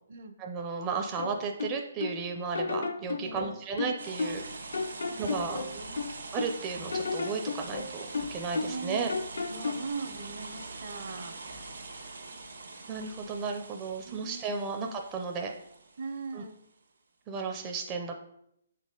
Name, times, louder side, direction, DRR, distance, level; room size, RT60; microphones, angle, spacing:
voice 1, 0.4-4.4 5.2-5.6 6.3-9.1 12.9-15.5 16.3-16.4 17.3-18.2, right 5 dB, 20° right, 3 dB, 0.4 m, -34 dB
sound 1, 1.2-2.2 2.5-4.5 4.7-6.6 6.9-8.8 9.1-9.9, left 4 dB, 75° left, 0.5 m, -33 dB
voice 2, 3.2-3.6 4.3-4.6 5.0-6.0 8.2-9.2 9.5-11.4 14.0-14.8 16.0-16.6, right 4 dB, 60° right, 8 dB, 0.7 m, -41 dB
sound 2, 4.0-16.5, right 3 dB, 85° right, 1.1 m, -43 dB
6.8 x 4.1 x 3.7 m, 0.77 s
hypercardioid pair, 155°, 0 cm